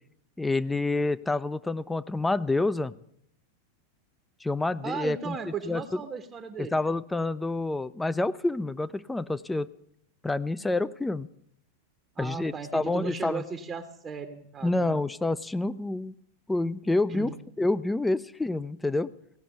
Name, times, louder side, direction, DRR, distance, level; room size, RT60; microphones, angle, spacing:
voice 1, 0.4-2.9 4.4-5.4 5.6-6.0 6.6-9.7 10.2-11.3 12.2-13.4 14.6-16.1 16.5-17.3 17.6-19.1, left 2 dB, 5° left, 16 dB, 0.3 m, -28 dB
voice 2, 4.8-6.8 12.2-15.0 17.1-17.3, right 5 dB, 20° right, 7 dB, 0.8 m, -36 dB
16.5 x 5.9 x 6.5 m, 0.73 s
figure-of-eight pair, 90°, 0 cm